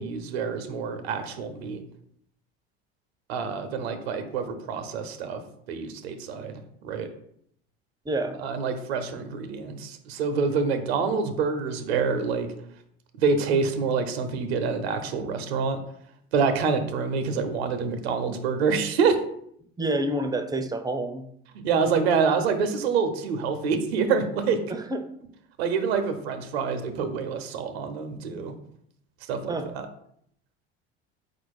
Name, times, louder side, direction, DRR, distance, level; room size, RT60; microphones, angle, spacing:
voice 1, 0.0-1.8 3.3-5.4 5.7-7.1 8.4-12.5 13.2-15.8 16.3-19.2 21.6-24.6 25.6-28.5 29.3-29.9, right 5 dB, 85° right, 9 dB, 0.6 m, -26 dB
voice 2, 8.1-8.4 19.8-21.2 24.7-25.1 29.5-29.7, right 1 dB, 15° right, 8 dB, 0.5 m, -28 dB
3.9 x 2.5 x 4.6 m, 0.69 s
hypercardioid pair, 75°, 31 cm